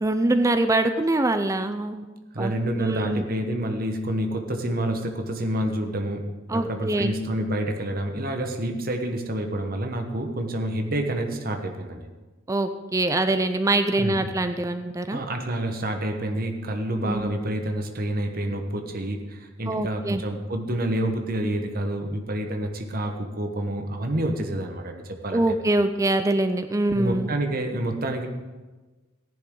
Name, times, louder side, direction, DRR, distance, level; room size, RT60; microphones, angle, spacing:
voice 1, 0.0-2.0 2.4-2.5 2.8-3.2 6.5-7.1 12.5-15.2 17.0-17.3 19.7-20.2 25.3-27.3, right 2 dB, 15° right, 9 dB, 0.4 m, -24 dB
voice 2, 2.3-12.0 14.0-14.2 15.1-25.5 26.9-28.3, right 1 dB, 45° right, 4 dB, 1.1 m, -28 dB
15.0 x 10.5 x 3.8 m, 1.2 s
head